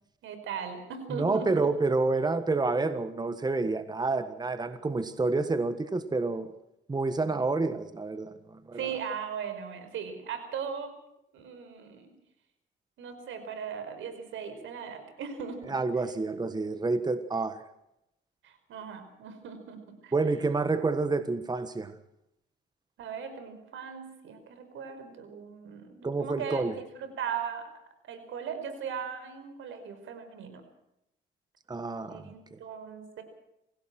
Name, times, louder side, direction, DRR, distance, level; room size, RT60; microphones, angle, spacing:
voice 1, 0.2-1.7 8.7-10.9 11.3-12.1 13.0-15.6 18.4-20.1 23.0-27.7 28.0-30.6 32.1-33.2, right 7 dB, 80° right, 9 dB, 5.0 m, -38 dB
voice 2, 1.1-6.5 6.9-8.8 15.7-17.6 20.1-21.9 26.0-26.7 31.7-32.6, right 3 dB, 20° right, 11 dB, 1.5 m, -29 dB
27.0 x 17.0 x 6.1 m, 0.83 s
cardioid pair, 90°, 20 cm